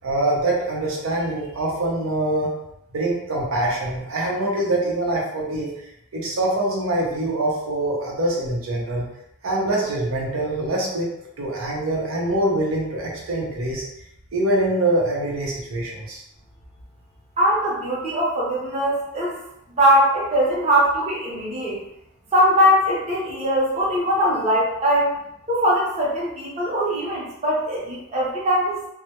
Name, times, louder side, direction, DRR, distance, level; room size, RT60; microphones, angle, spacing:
voice 1, 0.0-2.5 2.9-5.9 6.1-9.1 9.4-13.8 14.3-16.2, right 1 dB, 80° right, -3 dB, 0.6 m, -24 dB
voice 2, 17.4-19.4 19.8-21.8 22.3-25.1 25.5-28.8, equal, 30° right, -6 dB, 0.6 m, -21 dB
2.1 x 2.1 x 2.8 m, 0.80 s
head